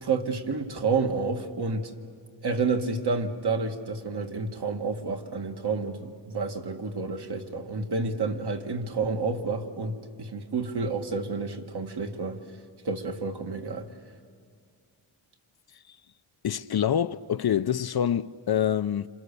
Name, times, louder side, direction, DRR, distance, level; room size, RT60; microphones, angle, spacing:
voice 1, 0.0-1.9 2.4-12.4 12.8-13.9, right 4 dB, 55° right, 2.1 m, -29 dB
voice 2, 16.4-19.1, left 9 dB, 50° left, 0.6 m, -26 dB
28.0 x 27.0 x 6.9 m
cardioid pair, 80°, 48 cm